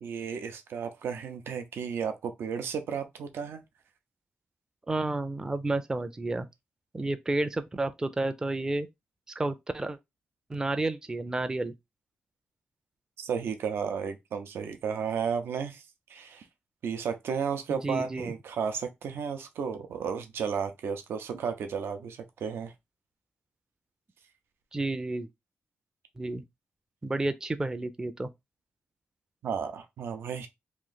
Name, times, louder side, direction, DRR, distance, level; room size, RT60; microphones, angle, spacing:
voice 1, 0.0-3.6 13.2-15.8 16.1-16.5 16.8-22.7 29.4-30.5, right 6 dB, 85° right, 0.6 m, -33 dB
voice 2, 4.9-6.5 6.9-8.9 9.4-10.0 10.5-11.7 17.7-18.3 24.7-25.3 26.2-26.4 27.0-28.3, right 2 dB, 15° right, 0.4 m, -31 dB
3.1 x 2.6 x 3.9 m
wide cardioid pair, 125°, 4 cm